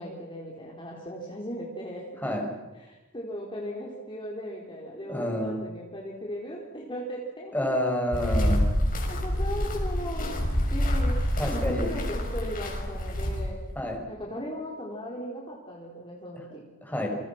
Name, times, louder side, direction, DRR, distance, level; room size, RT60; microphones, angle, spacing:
voice 1, 0.0-2.2 2.7-7.7 9.1-10.3 10.7-13.6 14.1-16.6, equal, 25° left, -3 dB, 4.2 m, -37 dB
voice 2, 5.0-5.6 7.5-8.6 11.4-11.9 13.8-14.0 16.8-17.1, left 1 dB, 10° left, 1 dB, 6.1 m, -28 dB
sound 1, 8.1-13.7, equal, 40° left, 6.7 m, -27 dB
29.5 x 27.5 x 6.1 m, 1.2 s
head